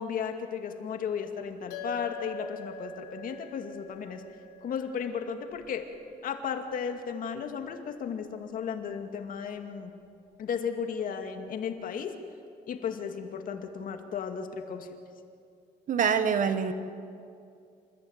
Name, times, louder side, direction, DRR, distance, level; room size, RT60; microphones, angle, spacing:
voice 1, 0.0-4.2 4.6-5.9 6.2-9.9 10.4-12.2 12.7-14.9, left 7 dB, 55° left, 6 dB, 2.3 m, -34 dB
sound 1, 1.7-6.4, left 3 dB, 90° left, 6.8 m, -44 dB
voice 2, 15.9-16.7, right 7 dB, 50° right, 10 dB, 1.7 m, -25 dB
28.0 x 14.5 x 9.1 m, 2.5 s
cardioid pair, 110°, 17 cm